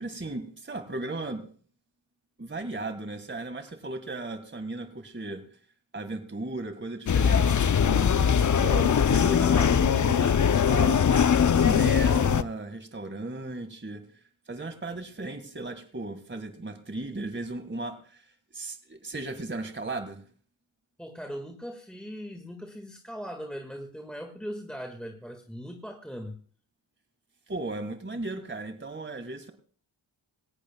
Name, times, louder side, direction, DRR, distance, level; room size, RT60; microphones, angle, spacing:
voice 1, 0.0-1.5 2.4-5.4 5.9-11.1 11.5-14.0 14.5-18.2 18.5-20.2 27.5-29.5, right 2 dB, 25° right, 9 dB, 1.8 m, -36 dB
sound 1, 7.1-12.4, left 7 dB, 40° left, 0.6 m, -21 dB
voice 2, 21.0-26.4, equal, ahead, 4 dB, 1.8 m, -39 dB
18.5 x 14.5 x 2.3 m, 0.43 s
cardioid pair, 50°, 49 cm